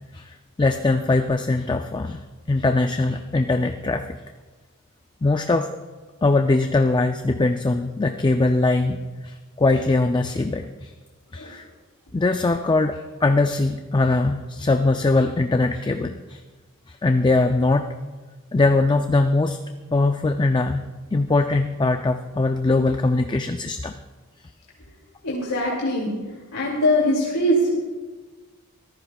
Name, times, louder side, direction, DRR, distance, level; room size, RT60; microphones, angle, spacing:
voice 1, 0.1-2.2 2.5-4.0 5.2-5.7 6.2-10.9 11.3-11.6 12.1-16.4 17.0-17.9 18.5-19.6 19.9-20.8 21.1-23.9, left 2 dB, 20° left, 6 dB, 0.4 m, -21 dB
voice 2, 25.2-26.1 26.5-27.7, equal, 90° left, -4 dB, 2.7 m, -22 dB
24.0 x 15.0 x 2.3 m, 1.3 s
head